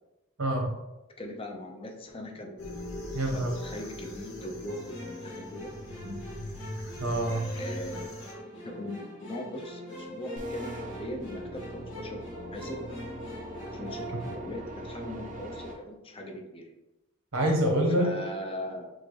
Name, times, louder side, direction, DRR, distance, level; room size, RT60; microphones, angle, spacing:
voice 1, 0.4-0.7 3.1-3.5 6.0-6.2 7.0-7.5 17.3-18.1, right 1 dB, 80° right, 0 dB, 1.1 m, -26 dB
voice 2, 1.2-2.6 3.3-5.7 7.6-8.1 8.6-12.2 12.5-12.8 13.7-16.7 18.0-18.9, left 1 dB, 25° left, 3 dB, 0.5 m, -40 dB
sound 1, 2.6-8.3, left 1 dB, 90° left, 1.0 m, -40 dB
sound 2, 4.7-14.4, left 1 dB, 65° left, 1.5 m, -42 dB
sound 3, 10.4-15.7, right 1 dB, 40° right, 0.7 m, -41 dB
6.3 x 2.3 x 3.2 m, 0.99 s
head